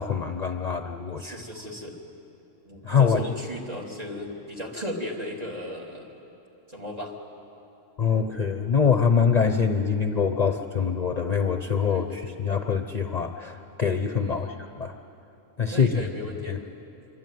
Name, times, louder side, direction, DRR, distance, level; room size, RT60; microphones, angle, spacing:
voice 1, 0.0-1.4 2.8-3.3 8.0-15.0 15.6-16.0 16.5-16.6, left 6 dB, 35° left, 6 dB, 0.8 m, -24 dB
voice 2, 1.2-2.0 2.7-6.1 6.7-7.2 9.5-9.6 11.9-12.3 14.2-14.6 15.7-16.6, left 1 dB, 30° right, 0 dB, 3.4 m, -36 dB
25.5 x 24.5 x 9.4 m, 2.9 s
omnidirectional pair, 1.3 m